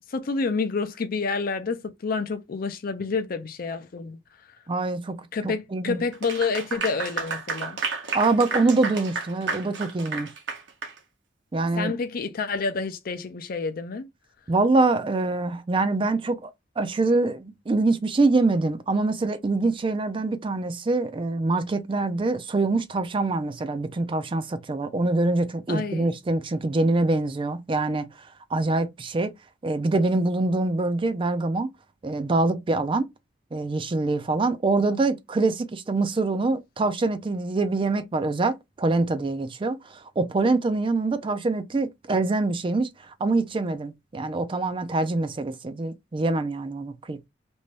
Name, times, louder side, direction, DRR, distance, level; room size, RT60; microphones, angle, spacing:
voice 1, 0.1-4.2 5.3-7.8 11.8-14.1 25.7-26.2, left 4 dB, 55° left, 0.5 m, -29 dB
voice 2, 4.7-6.0 8.1-10.3 11.5-11.9 14.5-16.5 16.8-29.3 29.6-31.7 32.0-33.1 33.5-47.3, right 3 dB, 30° right, 0.4 m, -25 dB
Clapping / Applause, 6.1-11.0, right 4 dB, 85° right, 0.8 m, -31 dB
2.6 x 2.2 x 3.2 m
head